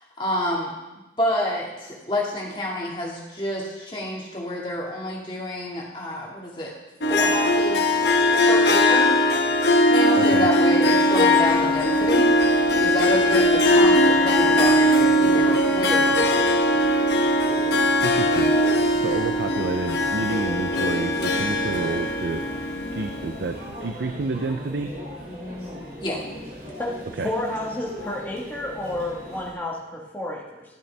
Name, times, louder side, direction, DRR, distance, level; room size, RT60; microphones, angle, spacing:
voice 1, 0.2-0.7 1.2-6.7 7.1-8.0 8.4-9.1 9.9-12.3 12.7-16.8 26.0-26.2, left 1 dB, 25° left, -3 dB, 2.0 m, -28 dB
Harp, 7.0-23.5, left 1 dB, 75° left, 1.0 m, -20 dB
voice 2, 10.2-10.5 18.0-18.6 19.0-22.4 22.9-24.9 27.1-27.3, right 3 dB, 80° right, 7 dB, 0.5 m, -29 dB
Conversation / Chatter / Crowd, 11.1-29.5, equal, 60° right, 2.5 m, -39 dB
voice 3, 27.2-30.6, left 1 dB, 10° left, -3 dB, 1.5 m, -30 dB
12.0 x 8.7 x 3.4 m, 1.1 s
head